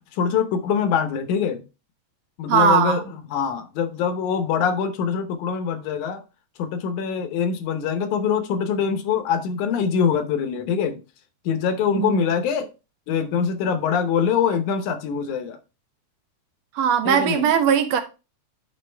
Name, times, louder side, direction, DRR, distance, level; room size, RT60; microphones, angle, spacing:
voice 1, 0.1-1.6 2.4-6.2 6.6-11.0 11.5-12.7 13.1-15.6 17.0-17.5, left 7 dB, 85° left, 2.4 m, -24 dB
voice 2, 2.5-3.0 12.0-12.3 16.8-18.0, right 8 dB, 70° right, 1.8 m, -19 dB
10.5 x 3.9 x 3.3 m
omnidirectional pair, 3.4 m